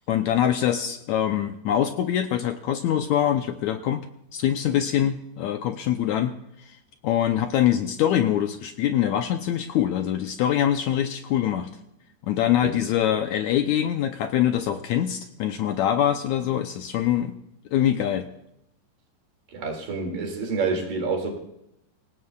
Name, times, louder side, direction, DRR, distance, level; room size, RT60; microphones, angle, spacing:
voice 1, 0.1-4.1 4.3-6.8 7.0-11.7 12.2-17.4 17.7-18.3, left 10 dB, 80° left, 7 dB, 1.7 m, -24 dB
voice 2, 19.5-21.3, right 4 dB, 70° right, 2 dB, 4.1 m, -28 dB
25.0 x 17.0 x 2.4 m, 0.82 s
omnidirectional pair, 4.0 m